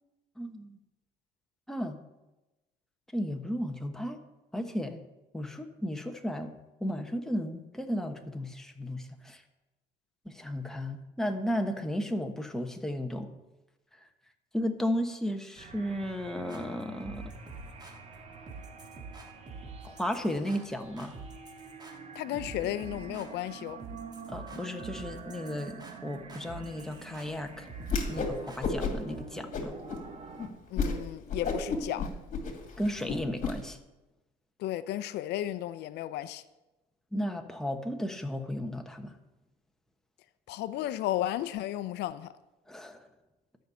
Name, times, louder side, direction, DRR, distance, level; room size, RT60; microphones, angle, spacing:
voice 1, 0.4-0.8 1.7-2.0 3.1-4.2 4.5-5.0 5.3-6.5 6.8-9.4 10.2-13.3 14.5-17.3 19.8-21.1 24.3-27.7 28.1-29.7 32.8-33.8 37.1-39.2 42.7-43.0, equal, 5° left, 1.1 m, -34 dB
sound 1, 15.6-30.5, right 5 dB, 40° right, 1.5 m, -47 dB
sound 2, 16.5-29.2, right 3 dB, 25° right, 1.7 m, -47 dB
voice 2, 22.1-23.8 30.7-32.1 34.6-36.4 40.5-42.3, left 13 dB, 80° left, 0.5 m, -34 dB
Whoosh swoosh swish, 27.8-28.3 28.6-29.1 29.5-30.0 30.4-30.5 30.8-31.0 31.3-33.5, left 4 dB, 45° left, 2.2 m, -31 dB
12.5 x 5.5 x 8.2 m
cardioid pair, 110°, 17 cm